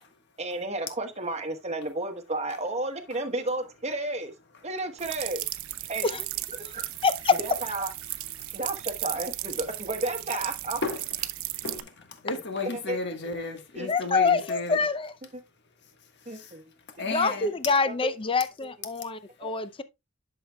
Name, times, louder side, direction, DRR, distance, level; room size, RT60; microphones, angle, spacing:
voice 1, 0.4-4.3 4.6-5.4 5.9-6.1 6.7-6.8 7.4-7.9 8.5-10.8 12.9-13.0 13.7-13.9 15.3-15.4 16.3-16.6 17.1-17.2 17.8-18.1 19.4-19.6, right 2 dB, 30° right, 1.2 m, -32 dB
sound 1, 5.0-11.8, right 15 dB, 90° right, 0.7 m, -35 dB
voice 2, 7.0-7.4 13.9-15.1 17.1-19.8, left 4 dB, 25° left, 0.5 m, -25 dB
voice 3, 11.6-14.8 16.2-16.6 16.9-17.5, left 2 dB, 55° left, 1.5 m, -34 dB
11.0 x 6.6 x 2.3 m
head